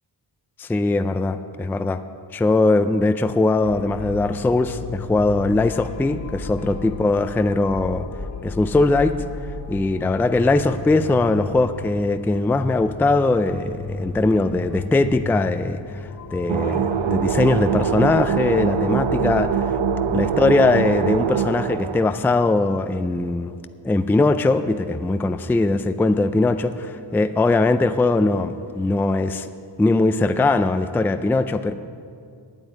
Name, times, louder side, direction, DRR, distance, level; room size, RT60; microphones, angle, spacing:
voice 1, 0.6-2.0 2.3-8.1 8.4-9.1 9.7-19.8 20.1-23.6 23.8-29.5 29.8-31.7, left 2 dB, 5° left, 10 dB, 0.3 m, -20 dB
sound 1, 3.6-21.3, left 3 dB, 40° left, 0.9 m, -34 dB
sound 2, 16.5-22.1, right 8 dB, 80° right, 0.7 m, -23 dB
9.1 x 9.1 x 9.6 m, 2.3 s
wide cardioid pair, 120°, 45 cm